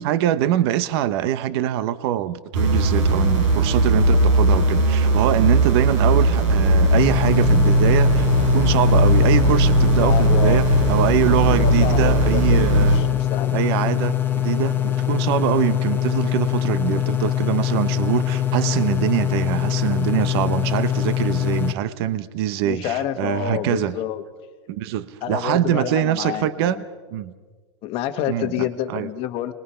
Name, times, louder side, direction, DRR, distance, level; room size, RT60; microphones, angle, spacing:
voice 1, 0.0-8.3 8.5-13.0 13.5-23.9 24.7-26.8 27.1-27.3 28.3-29.1, right 12 dB, 50° right, 14 dB, 0.9 m, -23 dB
sound 1, 2.5-13.0, right 1 dB, 75° right, 7.5 m, -18 dB
sound 2, 7.0-21.7, left 11 dB, 10° left, 1.1 m, -23 dB
voice 2, 9.5-10.6 11.5-13.6 22.6-24.2 25.2-26.8 27.8-29.5, left 11 dB, 35° left, 9 dB, 1.3 m, -28 dB
25.0 x 21.5 x 5.7 m, 1.5 s
supercardioid pair, 160°, 16 cm